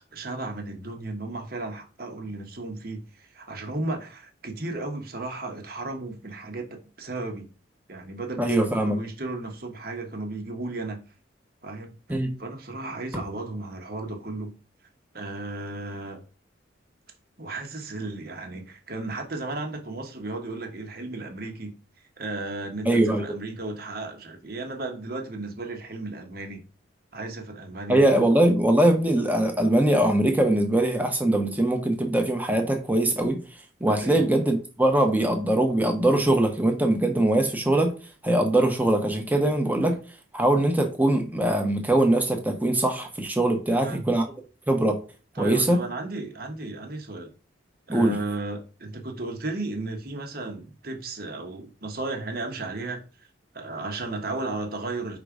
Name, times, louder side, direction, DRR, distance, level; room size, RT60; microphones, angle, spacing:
voice 1, 0.1-7.5 7.9-11.0 11.6-11.9 12.4-14.6 15.1-16.2 17.4-21.8 22.2-26.6 27.1-28.0 34.0-34.3 43.7-44.0 45.3-47.3 47.9-53.3 53.5-55.2, right 2 dB, 50° right, 1.2 m, -34 dB
voice 2, 8.4-9.0 12.1-12.3 22.8-23.2 27.9-33.4 33.8-37.9 38.2-40.0 40.3-44.3 44.7-45.0 45.4-45.8 47.9-48.2, right 1 dB, 10° right, 1.0 m, -22 dB
5.2 x 3.8 x 4.9 m
head